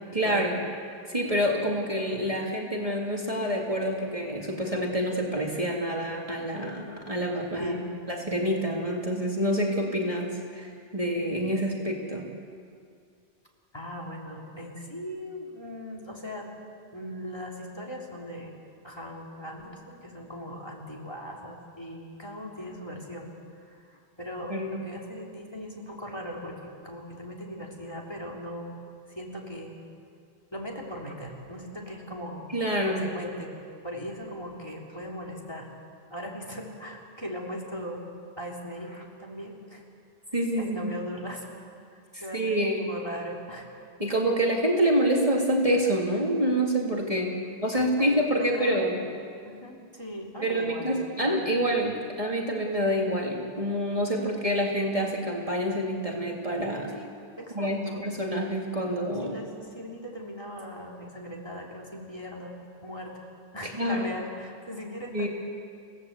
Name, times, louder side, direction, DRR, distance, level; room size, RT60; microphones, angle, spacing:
voice 1, 0.1-0.6 1.1-7.7 8.1-12.3 24.5-24.8 32.5-33.1 40.3-40.9 42.1-42.9 44.0-49.0 50.4-56.9 57.5-59.3 63.6-64.0 65.1-65.3, equal, 30° right, -1 dB, 2.7 m, -27 dB
voice 2, 7.6-8.0 13.7-16.5 16.9-18.6 18.8-23.3 23.6-28.7 29.2-29.8 30.5-32.5 32.9-33.5 33.8-35.7 36.1-38.0 38.4-39.8 40.5-41.6 41.9-43.7 47.7-49.0 49.4-50.9 51.2-51.4 56.9-57.1 57.4-58.1 59.2-63.3 63.5-65.3, equal, 25° left, -2 dB, 3.4 m, -39 dB
29.5 x 17.0 x 8.1 m, 2.3 s
omnidirectional pair, 1.1 m